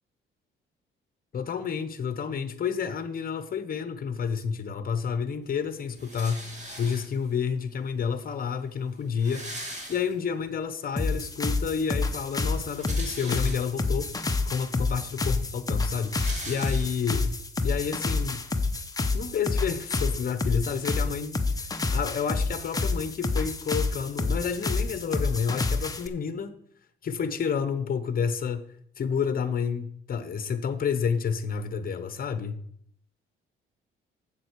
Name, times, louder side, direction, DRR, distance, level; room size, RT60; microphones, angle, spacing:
voice 1, 1.3-6.5 6.8-9.5 9.9-14.1 14.4-16.1 16.4-17.3 17.6-18.4 19.1-21.4 21.9-26.6 27.0-28.6 29.0-32.6, left 6 dB, 45° left, 1.0 m, -30 dB
sound 1, 6.0-7.4 8.3-8.4 8.6-8.7 8.9-10.5 10.9-11.0 12.4-14.0 14.6-14.7 15.0-17.3, right 1 dB, 35° right, 2.6 m, -41 dB
sound 2, 11.0-26.1, left 3 dB, 15° left, 0.9 m, -28 dB
7.7 x 7.7 x 6.4 m
cardioid pair, 110°, 21 cm